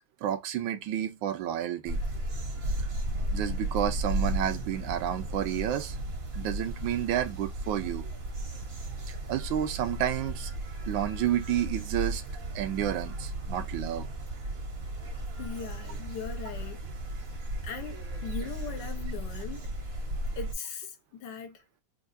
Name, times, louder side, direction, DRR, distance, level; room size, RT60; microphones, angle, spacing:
voice 1, 0.2-2.0 3.3-6.0 6.3-8.1 9.1-10.5 10.9-12.2 12.5-14.1, right 11 dB, 80° right, 1.4 m, -30 dB
sound 1, 1.9-20.5, right 1 dB, 40° right, 0.9 m, -35 dB
voice 2, 15.4-16.8 17.6-19.7 20.4-21.6, left 7 dB, 70° left, 1.3 m, -40 dB
4.5 x 2.4 x 2.5 m
omnidirectional pair, 2.1 m